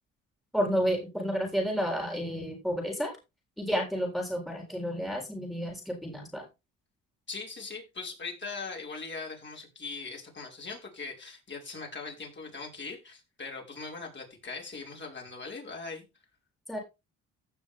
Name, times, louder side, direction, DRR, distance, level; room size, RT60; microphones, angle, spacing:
voice 1, 0.5-3.1 3.6-6.5 16.7-16.8, equal, ahead, 3.8 m, -31 dB
voice 2, 7.3-16.0, left 4 dB, 35° left, 5.8 m, -40 dB
16.0 x 6.2 x 3.7 m
cardioid pair, 80°, 32 cm